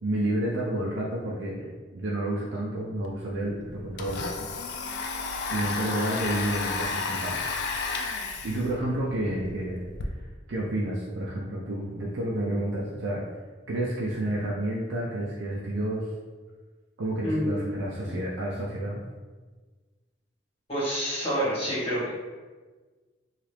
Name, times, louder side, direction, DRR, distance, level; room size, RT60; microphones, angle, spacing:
voice 1, 0.0-4.3 5.5-7.3 8.4-9.8 10.5-13.2 13.7-16.1 17.0-19.0, right 1 dB, 85° right, -4 dB, 0.5 m, -30 dB
Domestic sounds home sounds, 3.0-3.1 3.4-10.1, left 4 dB, 65° left, 0.4 m, -33 dB
voice 2, 17.2-18.1 20.7-22.1, equal, 35° left, -9 dB, 1.4 m, -28 dB
2.8 x 2.4 x 3.2 m, 1.4 s
head